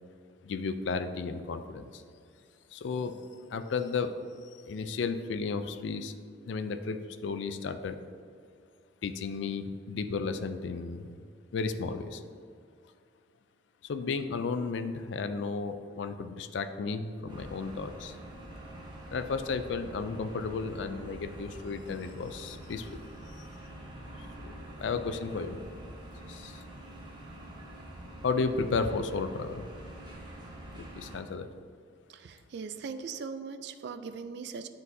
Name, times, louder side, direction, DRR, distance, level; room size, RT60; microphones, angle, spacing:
voice 1, 0.4-2.0 2.7-3.1 3.5-4.1 4.6-6.1 6.5-8.0 9.0-11.2 11.5-12.2 13.8-18.2 19.1-23.0 23.4-23.5 24.4-25.6 26.2-26.6 28.2-29.7 30.8-31.5, left 4 dB, 70° left, 10 dB, 0.4 m, -33 dB
sound 1, 17.3-31.2, right 1 dB, 25° right, 0.9 m, -46 dB
voice 2, 32.1-34.7, right 5 dB, 60° right, 10 dB, 0.3 m, -40 dB
9.5 x 4.0 x 2.7 m, 2.2 s
head